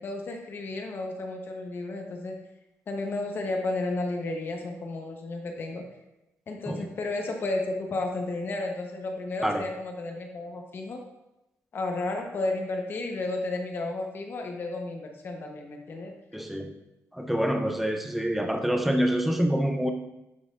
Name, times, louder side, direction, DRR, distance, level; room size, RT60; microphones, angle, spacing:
voice 1, 0.0-2.4 2.9-5.9 6.5-11.0 11.7-16.1, left 2 dB, 45° left, 3 dB, 1.0 m, -32 dB
voice 2, 16.3-16.7 17.1-19.9, equal, ahead, 4 dB, 0.6 m, -26 dB
10.5 x 5.7 x 2.5 m, 0.94 s
wide cardioid pair, 175°, 5 cm